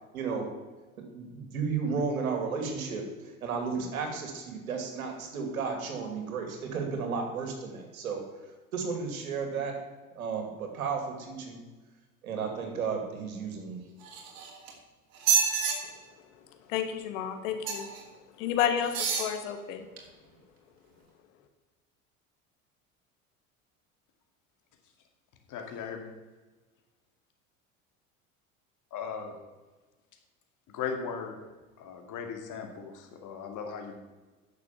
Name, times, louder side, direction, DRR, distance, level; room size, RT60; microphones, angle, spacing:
voice 1, 0.1-0.5 1.1-8.2 8.7-9.8 10.1-11.6 12.2-13.8, right 5 dB, 80° right, 4 dB, 2.5 m, -33 dB
sound 1, 14.0-14.7 15.2-15.8 17.6-18.0 18.8-19.3 20.0-20.1, right 6 dB, 55° right, 2.8 m, -28 dB
voice 2, 16.7-17.9 18.4-19.9, left 9 dB, 65° left, 7 dB, 1.5 m, -30 dB
voice 3, 25.5-26.1 28.9-29.4 30.7-31.3 31.8-34.0, left 6 dB, 45° left, 4 dB, 2.3 m, -37 dB
10.5 x 6.7 x 7.1 m, 1.2 s
hypercardioid pair, 75°, 42 cm